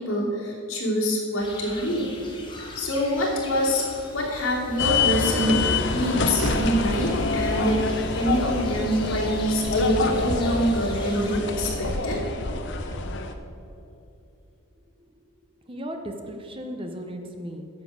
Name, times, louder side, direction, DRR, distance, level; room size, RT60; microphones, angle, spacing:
voice 1, 0.0-2.1 2.7-3.9 4.1-7.8 8.2-12.2, equal, 70° left, -4 dB, 2.8 m, -25 dB
sound 1, 1.4-11.4, left 2 dB, 20° left, 1.3 m, -42 dB
sound 2, 2.7-2.8 3.7-4.6 5.5-7.8 8.1-8.2 9.8-9.9, right 2 dB, 75° right, 0.7 m, -40 dB
sound 3, 4.8-13.3, left 3 dB, 55° left, 0.8 m, -26 dB
voice 2, 15.6-17.7, equal, 25° right, 4 dB, 0.8 m, -36 dB
10.0 x 7.4 x 6.4 m, 2.8 s
head